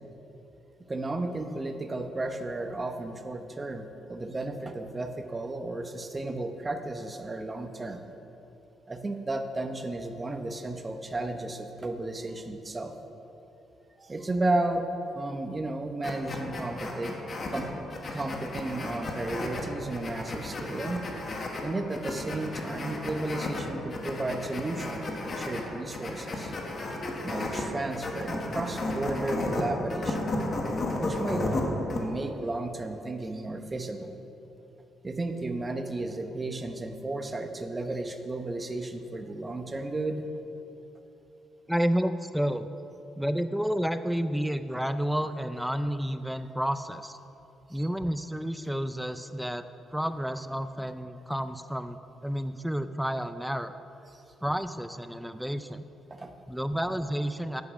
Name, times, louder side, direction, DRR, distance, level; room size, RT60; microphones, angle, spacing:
voice 1, 0.9-8.0 8.9-12.9 14.0-14.9 15.1-17.2 17.5-17.7 18.1-21.0 21.6-26.5 27.2-30.3 31.0-31.6 31.9-34.2 35.0-40.2 47.7-47.9 56.1-56.3, right 2 dB, 25° right, 6 dB, 0.9 m, -33 dB
sound 1, 16.0-32.0, left 2 dB, 45° left, 1.5 m, -34 dB
voice 2, 41.7-42.7 43.2-47.2 47.7-49.6 49.9-53.7 54.4-55.8 56.5-57.6, equal, ahead, 11 dB, 0.4 m, -30 dB
9.5 x 8.5 x 6.2 m, 2.9 s
cardioid pair, 90°, 0 cm